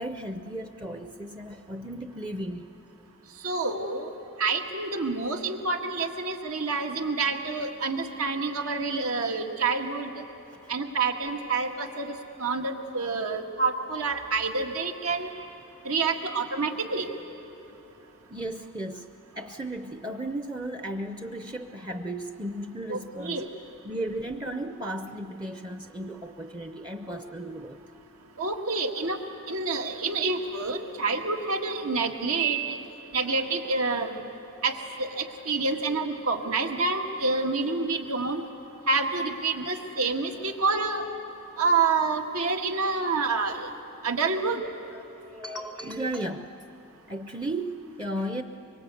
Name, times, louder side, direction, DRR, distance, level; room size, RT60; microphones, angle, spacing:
voice 1, 0.0-2.7 10.5-10.7 18.3-19.1 19.4-23.5 23.8-27.8 40.5-40.6 44.9-46.6 47.1-48.4, right 1 dB, 20° right, 7 dB, 0.6 m, -35 dB
voice 2, 3.4-4.1 4.4-10.1 10.7-12.1 12.4-15.3 15.9-17.1 22.9-23.5 28.4-29.2 29.5-32.8 33.1-34.2 34.6-34.7 35.0-35.1 35.5-38.4 38.9-41.0 41.6-43.7 44.0-44.6, right 4 dB, 80° right, 3 dB, 1.8 m, -27 dB
25.0 x 23.5 x 8.4 m, 2.8 s
head